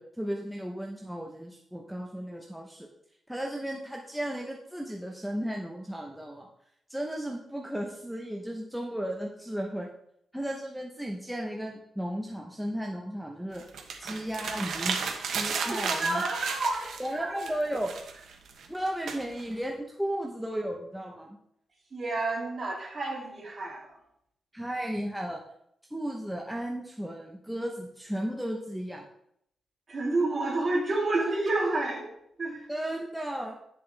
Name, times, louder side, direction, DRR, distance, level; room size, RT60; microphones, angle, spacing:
voice 1, 0.0-2.9 3.3-6.5 6.9-9.9 10.3-13.6 14.0-15.0 15.3-16.2 17.0-17.9 18.7-21.4 24.5-25.4 25.9-29.0 32.7-33.6, right 1 dB, ahead, 0 dB, 0.8 m, -34 dB
sound 1, 13.5-17.1 17.4-19.6, right 5 dB, 85° right, 1.1 m, -34 dB
voice 2, 15.5-17.5 21.9-24.0 29.9-32.0 32.4-32.7, right 2 dB, 35° right, -2 dB, 2.8 m, -30 dB
10.0 x 7.1 x 3.3 m, 0.74 s
wide cardioid pair, 130°, 0 cm